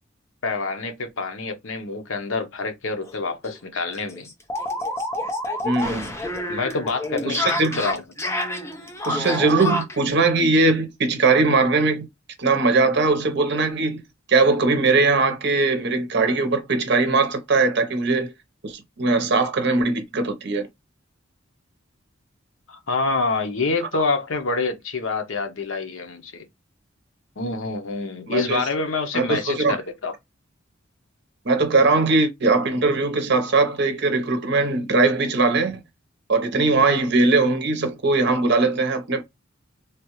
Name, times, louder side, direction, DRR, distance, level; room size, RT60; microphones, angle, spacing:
voice 1, 0.4-4.3 6.5-8.0 22.7-26.4 27.4-30.1, left 3 dB, 80° left, 0.7 m, -27 dB
sound 1, 3.0-3.1 3.4-3.5 3.9-10.0, left 1 dB, 15° left, 0.6 m, -28 dB
voice 2, 5.6-6.1 7.3-7.8 9.1-12.1 12.4-14.0 14.3-18.3 18.6-20.7 28.3-28.6 29.1-29.8 31.4-35.8 36.3-39.2, right 3 dB, 60° right, 0.7 m, -20 dB
3.3 x 2.3 x 2.9 m
head